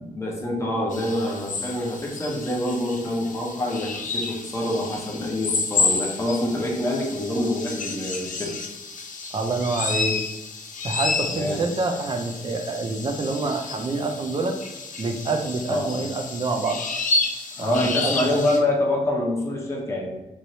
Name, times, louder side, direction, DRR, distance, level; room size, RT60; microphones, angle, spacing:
voice 1, 0.0-8.5 11.2-11.6 15.7-16.0 17.6-20.1, left 1 dB, 20° left, -2 dB, 0.7 m, -26 dB
sound 1, 0.9-18.6, left 4 dB, 60° left, 0.5 m, -30 dB
voice 2, 9.3-10.2 10.8-14.5 15.0-16.8 17.6-18.4, right 3 dB, 35° right, 4 dB, 0.4 m, -27 dB
3.1 x 3.0 x 2.7 m, 1.1 s
wide cardioid pair, 120°, 15 cm